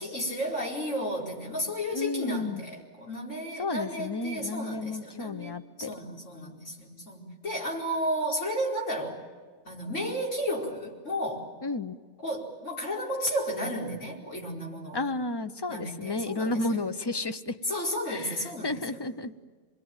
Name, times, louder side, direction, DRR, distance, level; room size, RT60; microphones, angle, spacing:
voice 1, 0.0-5.5 5.8-9.2 9.7-11.5 12.2-15.0 15.7-16.6 17.7-19.0, equal, 85° left, -3 dB, 5.2 m, -33 dB
voice 2, 1.9-2.6 3.6-5.9 11.6-12.0 14.9-17.6 18.1-19.3, left 2 dB, 25° left, 11 dB, 0.7 m, -32 dB
27.5 x 22.0 x 9.1 m, 1.5 s
omnidirectional pair, 1.2 m